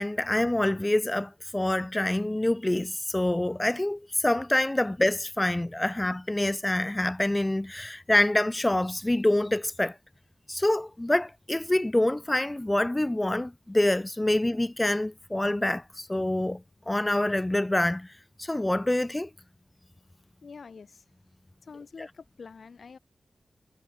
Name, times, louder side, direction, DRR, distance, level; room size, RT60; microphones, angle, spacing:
voice 1, 0.0-10.0 10.5-18.1 18.4-19.3 22.0-22.1, left 1 dB, 15° left, 0.4 m, -26 dB
voice 2, 20.4-21.0 21.7-23.0, left 5 dB, 65° left, 1.5 m, -46 dB
cardioid pair, 55°, 0 cm